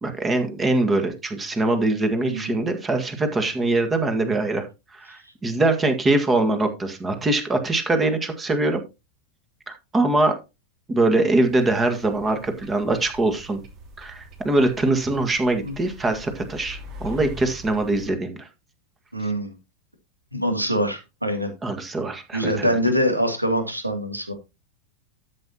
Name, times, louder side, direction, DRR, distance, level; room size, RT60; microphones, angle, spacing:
voice 1, 0.0-8.8 9.7-10.4 10.9-13.6 14.0-18.5 21.6-22.8, right 2 dB, 15° right, 7 dB, 1.8 m, -23 dB
sound 1, 11.4-18.1, equal, 35° right, 2.8 m, -42 dB
voice 2, 19.1-19.6 20.3-21.5 22.3-24.3, equal, 85° right, 6 dB, 2.5 m, -24 dB
13.0 x 7.3 x 2.9 m, 0.25 s
figure-of-eight pair, 90°, 0 cm